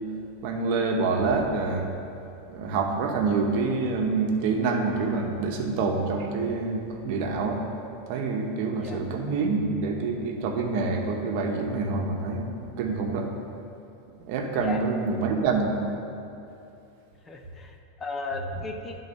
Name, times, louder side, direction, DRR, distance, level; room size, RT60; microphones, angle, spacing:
voice 1, 0.4-1.9 2.5-7.6 8.1-13.3 14.2-15.8, right 4 dB, 55° right, 2 dB, 1.0 m, -26 dB
voice 2, 17.3-19.0, left 3 dB, 20° left, 4 dB, 0.5 m, -35 dB
10.0 x 4.0 x 5.4 m, 2.7 s
supercardioid pair, 155°, 0 cm